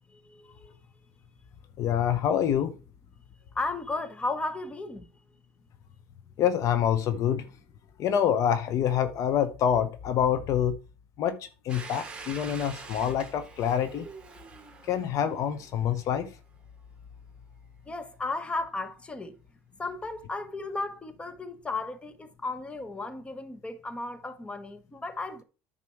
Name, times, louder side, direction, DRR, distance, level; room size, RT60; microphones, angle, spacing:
voice 1, 0.1-0.7 3.5-5.1 17.9-19.4 19.8-25.4, left 3 dB, 15° left, 1.3 m, -35 dB
voice 2, 1.8-2.7 6.4-7.5 8.0-10.8 11.2-14.1 14.8-16.3, left 9 dB, 50° left, 0.9 m, -26 dB
Domestic sounds home sounds, 11.7-16.3, right 4 dB, 15° right, 2.7 m, -45 dB
9.4 x 6.0 x 4.6 m
supercardioid pair, 100°, 7 cm